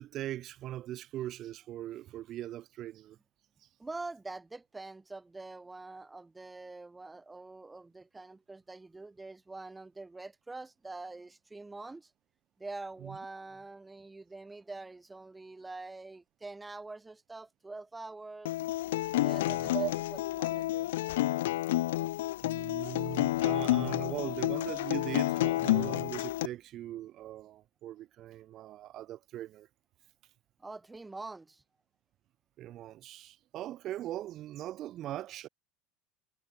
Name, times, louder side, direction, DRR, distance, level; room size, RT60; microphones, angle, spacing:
voice 1, 0.0-3.2 13.0-13.2 19.5-19.9 22.4-29.7 32.6-35.5, right 13 dB, 50° right, 1.6 m, -40 dB
voice 2, 3.8-12.1 12.6-18.5 19.2-20.9 30.6-31.6, right 3 dB, 15° right, 1.4 m, -45 dB
Acoustic guitar, 18.5-26.5, left 16 dB, 80° left, 0.4 m, -30 dB
hypercardioid pair, 85°, 0 cm